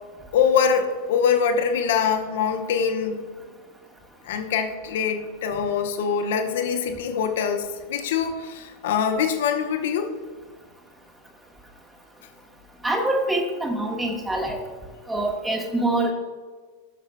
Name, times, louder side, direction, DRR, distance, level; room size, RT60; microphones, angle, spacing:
voice 1, 0.3-3.2 4.2-10.1, left 7 dB, 55° left, 6 dB, 0.8 m, -24 dB
voice 2, 12.8-14.6 15.1-16.1, right 1 dB, 10° right, 1 dB, 1.1 m, -25 dB
16.0 x 6.8 x 2.2 m, 1.5 s
figure-of-eight pair, 90°, 0 cm